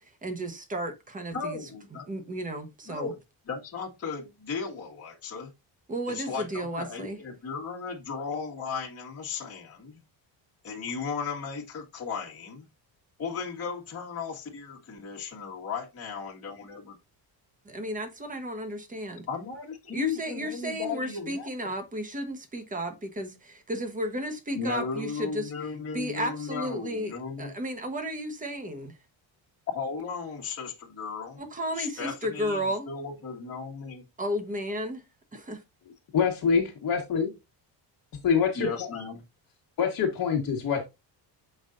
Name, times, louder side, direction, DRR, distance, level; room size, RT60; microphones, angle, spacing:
voice 1, 0.0-1.6 2.1-3.1 5.9-7.2 17.6-19.3 19.9-25.5 25.9-27.1 27.4-29.0 31.4-32.9 34.2-35.0 35.5-35.6, equal, 15° right, 1.1 m, -33 dB
voice 2, 1.3-2.1 2.9-3.1 3.5-5.5 6.1-10.0 10.6-12.7 13.2-17.0 19.3-21.5 24.5-27.5 29.7-31.4 31.8-34.0 38.6-39.2, left 5 dB, 30° left, 1.7 m, -35 dB
voice 3, 36.1-37.3 38.2-38.9 39.8-40.8, left 6 dB, 50° left, 1.5 m, -25 dB
7.1 x 5.5 x 2.6 m
cardioid pair, 150°, 46 cm